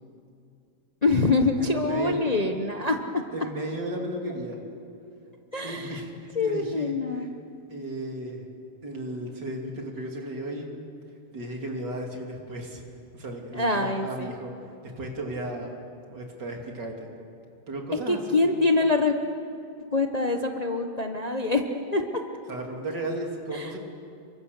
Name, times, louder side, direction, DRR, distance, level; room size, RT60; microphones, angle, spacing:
voice 1, 1.0-3.3 5.5-6.0 6.3-7.3 13.5-14.3 17.9-19.2 19.8-22.2 23.5-23.7, left 3 dB, 30° left, 4 dB, 0.9 m, -25 dB
voice 2, 1.6-2.2 3.3-4.6 5.6-7.3 7.7-8.5 8.8-10.7 11.3-12.8 13.1-14.5 14.8-15.8 16.1-17.1 17.7-18.4 22.5-23.8, right 1 dB, 65° right, 1 dB, 3.5 m, -34 dB
29.0 x 23.0 x 6.7 m, 2.6 s
omnidirectional pair, 2.0 m